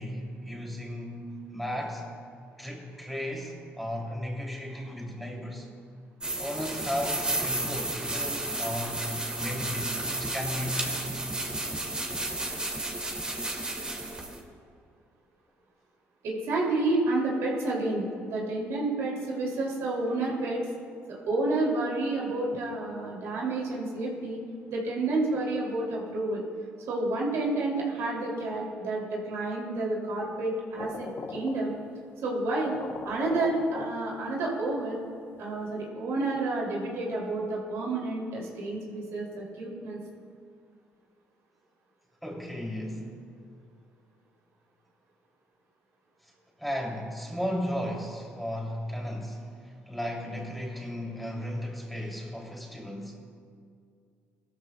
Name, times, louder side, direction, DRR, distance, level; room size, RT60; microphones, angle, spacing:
voice 1, 0.0-2.0 2.6-5.7 6.4-11.2 42.2-43.2 46.6-53.2, equal, ahead, -1 dB, 2.8 m, -35 dB
sound 1, 6.2-14.4, right 2 dB, 20° right, 2.2 m, -32 dB
voice 2, 16.2-20.6 21.1-24.4 24.7-26.4 26.9-31.8 32.2-32.8 33.0-35.0 35.4-40.0, right 2 dB, 75° right, -2 dB, 2.6 m, -30 dB
sound 2, 30.8-32.1 32.4-32.5 32.6-34.9, left 5 dB, 45° left, 0.7 m, -40 dB
17.0 x 13.5 x 2.2 m, 2.2 s
supercardioid pair, 70°, 5 cm